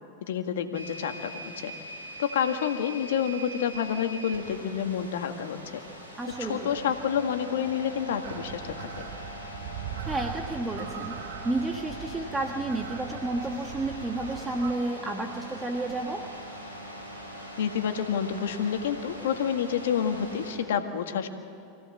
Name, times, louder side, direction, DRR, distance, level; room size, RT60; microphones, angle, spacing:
voice 1, 0.3-1.7 2.2-5.8 6.4-8.9 17.6-21.3, left 8 dB, 75° left, 6 dB, 1.8 m, -29 dB
sound 1, 0.7-20.5, equal, 85° right, 6.4 m, -42 dB
voice 2, 6.2-6.7 10.0-16.3, right 2 dB, 15° right, 3 dB, 1.6 m, -31 dB
sound 2, 8.2-14.7, right 12 dB, 60° right, 0.8 m, -41 dB
24.5 x 17.0 x 7.6 m, 2.8 s
hypercardioid pair, 95°, 0 cm